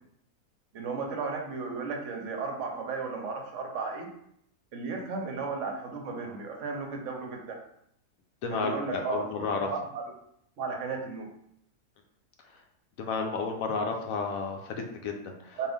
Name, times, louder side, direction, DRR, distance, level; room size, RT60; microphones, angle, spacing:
voice 1, 0.7-4.1 4.7-7.6 8.5-9.2 9.6-10.0 10.6-11.3 15.6-15.7, right 4 dB, 60° right, 2 dB, 0.9 m, -34 dB
voice 2, 8.4-9.7 13.0-15.6, left 4 dB, 70° left, 3 dB, 0.9 m, -32 dB
3.6 x 2.5 x 3.5 m, 0.72 s
omnidirectional pair, 1.7 m